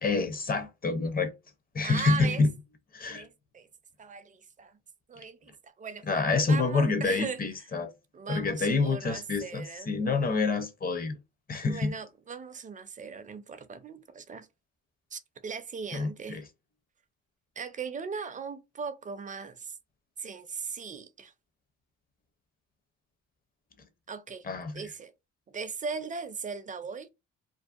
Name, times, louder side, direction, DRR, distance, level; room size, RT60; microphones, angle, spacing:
voice 1, 0.0-1.3 1.7-2.5 2.9-3.3 6.1-7.9 8.3-11.2 11.5-11.9 15.9-16.4 24.5-24.7, left 4 dB, 30° left, 0.6 m, -27 dB
voice 2, 1.8-2.4 3.1-3.7 4.0-4.8 5.1-7.4 8.1-9.9 11.7-14.5 15.1-16.4 17.6-19.7 20.2-21.3 24.1-24.5 24.7-25.1 25.5-27.1, right 5 dB, 25° right, 0.4 m, -38 dB
2.6 x 2.0 x 2.4 m
cardioid pair, 90°, 30 cm